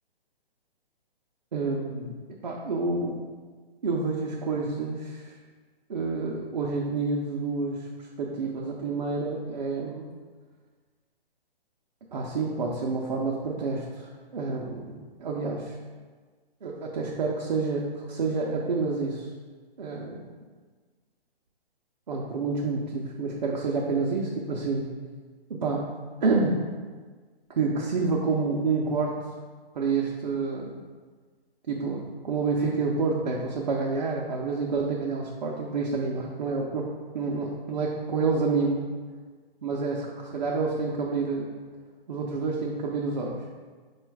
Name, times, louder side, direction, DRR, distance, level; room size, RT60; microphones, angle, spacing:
voice 1, 1.5-3.2 3.8-5.3 5.9-10.1 12.1-15.8 16.6-19.3 19.8-20.3 22.1-24.9 25.5-25.9 26.2-26.6 27.5-29.2 29.7-30.8 31.7-38.9 39.6-41.5 42.1-43.5, right 4 dB, 50° right, -2 dB, 0.5 m, -28 dB
4.8 x 2.3 x 4.5 m, 1.5 s
hypercardioid pair, 175°, 31 cm